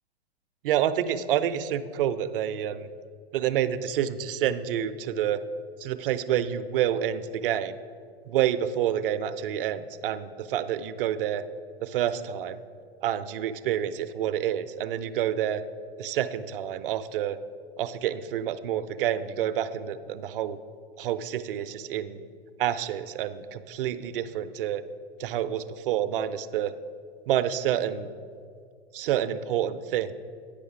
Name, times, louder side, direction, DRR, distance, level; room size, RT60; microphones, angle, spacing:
voice 1, 0.6-2.9 3.3-5.4 5.8-7.8 8.3-11.4 11.8-12.6 13.0-15.6 16.0-17.4 17.8-20.6 21.0-22.2 22.6-24.8 25.2-26.7 27.3-28.1 28.9-30.1, right 10 dB, 55° right, 12 dB, 0.5 m, -28 dB
8.8 x 5.2 x 4.9 m, 2.2 s
hypercardioid pair, 110°, 32 cm